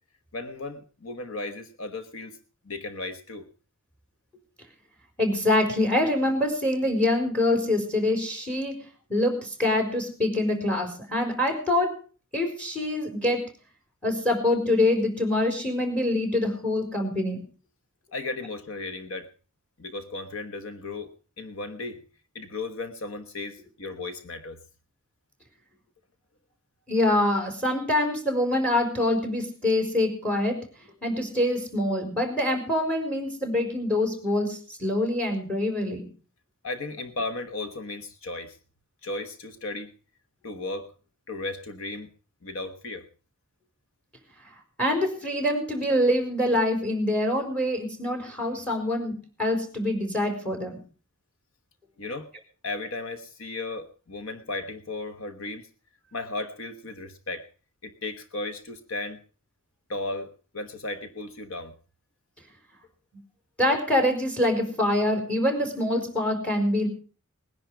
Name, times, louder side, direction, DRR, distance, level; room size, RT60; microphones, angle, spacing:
voice 1, 0.3-2.4 2.6-3.5 18.1-19.3 19.8-22.0 22.3-24.6 36.6-38.6 39.0-39.9 40.4-40.9 41.3-42.1 42.4-43.1 52.0-52.3 52.6-55.7 56.1-57.5 57.8-59.2 59.9-61.7, left 2 dB, 65° left, 9 dB, 1.2 m, -35 dB
voice 2, 5.2-8.8 9.1-12.0 12.3-13.4 14.0-17.4 26.9-30.6 31.0-36.0 44.8-49.1 49.4-50.8 63.6-66.9, left 1 dB, 5° left, 5 dB, 4.7 m, -25 dB
20.5 x 10.5 x 5.0 m, 0.38 s
head